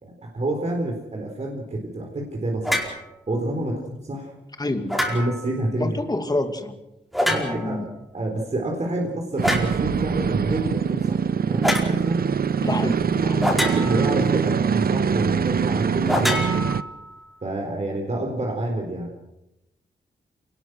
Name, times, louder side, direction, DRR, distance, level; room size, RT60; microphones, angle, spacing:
voice 1, 0.0-2.9 3.3-3.8 4.1-4.3 5.1-6.0 7.3-7.9 8.1-11.2 11.5-12.2 13.5-16.7 17.4-19.1, right 1 dB, 40° right, 1 dB, 4.1 m, -28 dB
sound 1, 2.6-3.0 4.9-5.5 7.1-7.8 9.4-9.8 11.6-11.9 13.4-14.2 16.1-17.2, equal, ahead, 4.8 m, -25 dB
voice 2, 3.6-3.9 4.6-5.0 5.8-6.8 7.3-7.9 12.6-13.6, left 2 dB, 20° left, 7 dB, 2.4 m, -28 dB
sound 2, 9.4-16.8, right 6 dB, 55° right, 0.7 m, -23 dB
27.5 x 19.0 x 6.3 m, 0.89 s
wide cardioid pair, 115°, 18 cm